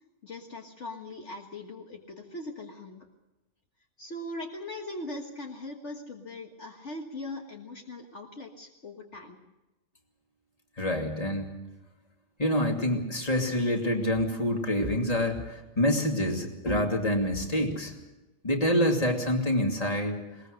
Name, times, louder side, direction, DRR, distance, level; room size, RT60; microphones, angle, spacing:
voice 1, 0.2-3.1 4.0-9.4, left 2 dB, 60° left, 2 dB, 1.9 m, -40 dB
voice 2, 10.8-11.5 12.4-17.9 18.4-20.2, left 1 dB, 30° left, 2 dB, 2.7 m, -27 dB
21.5 x 19.5 x 6.5 m, 1.0 s
omnidirectional pair, 1.4 m